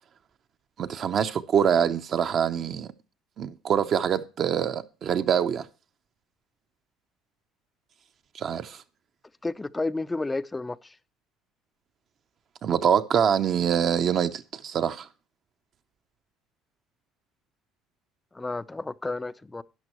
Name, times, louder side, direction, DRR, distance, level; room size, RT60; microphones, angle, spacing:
voice 1, 0.8-2.9 3.4-5.7 8.3-8.8 12.6-15.1, right 8 dB, 45° right, 0.6 m, -25 dB
voice 2, 9.4-11.0 18.3-19.6, left 2 dB, 10° left, 0.4 m, -31 dB
12.5 x 10.0 x 3.0 m
cardioid pair, 130°, 0 cm